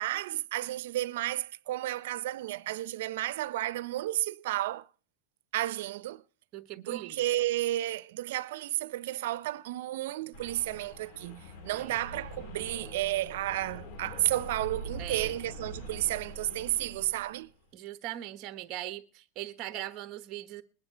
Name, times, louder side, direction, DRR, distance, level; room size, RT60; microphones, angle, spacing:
voice 1, 0.0-4.9 5.5-6.2 6.8-17.5, right 15 dB, 80° right, 0.6 m, -32 dB
voice 2, 6.5-7.2 11.7-12.0 15.0-15.3 17.7-20.6, right 14 dB, 40° right, 1.2 m, -40 dB
sound 1, 10.3-17.6, equal, 70° left, 4.1 m, -44 dB
21.0 x 9.6 x 4.5 m
supercardioid pair, 150°, 0 cm